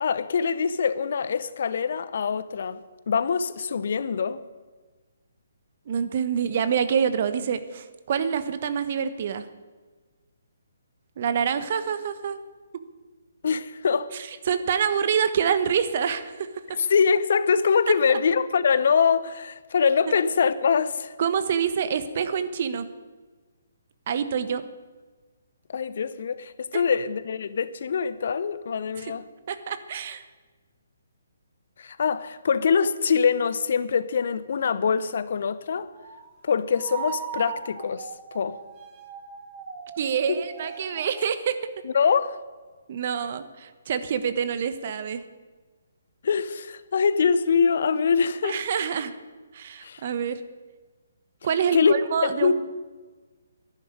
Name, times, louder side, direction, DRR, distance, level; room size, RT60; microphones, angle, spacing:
voice 1, 0.0-4.4 13.4-14.1 16.8-21.1 25.7-29.3 31.8-35.9 36.4-38.6 40.3-40.4 41.8-42.4 46.2-48.6 49.8-50.0 51.7-51.9 52.2-52.5, left 6 dB, 55° left, 0.9 m, -24 dB
voice 2, 5.9-9.5 11.2-12.4 14.1-16.5 17.9-18.2 21.2-22.9 24.1-24.6 26.7-26.8 29.0-29.1 29.5-30.2 40.0-41.6 42.9-45.2 48.4-49.1 49.5-50.4 51.4-52.5, right 7 dB, 45° right, 1.2 m, -26 dB
sound 1, 35.9-36.3 36.7-41.3, right 8 dB, 25° right, 1.8 m, -39 dB
11.0 x 11.0 x 9.2 m
figure-of-eight pair, 140°, 0 cm